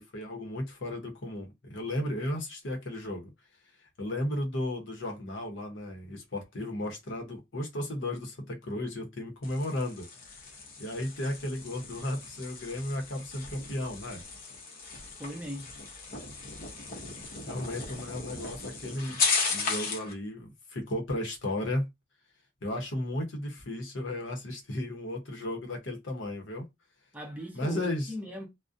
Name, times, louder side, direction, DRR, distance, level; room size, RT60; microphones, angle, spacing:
voice 1, 0.0-3.3 4.0-10.1 10.8-14.2 17.5-19.2 19.5-21.9 22.6-26.6 27.5-28.1, left 1 dB, 80° left, 0.8 m, -34 dB
sound 1, 9.4-20.1, left 4 dB, 50° left, 0.7 m, -36 dB
voice 2, 15.2-15.7 27.1-28.5, equal, 10° right, 0.6 m, -39 dB
2.4 x 2.1 x 2.5 m
head